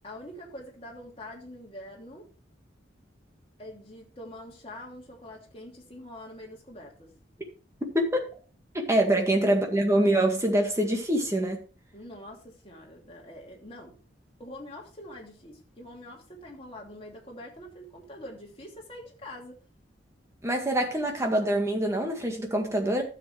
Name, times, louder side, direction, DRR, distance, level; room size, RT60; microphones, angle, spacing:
voice 1, 0.0-2.3 3.6-7.1 9.0-9.2 11.9-14.0 14.4-19.6, left 1 dB, 30° left, 2.7 m, -45 dB
voice 2, 7.9-8.3 8.7-11.6 20.4-23.0, right 1 dB, 15° right, 1.9 m, -25 dB
12.0 x 7.5 x 3.3 m
head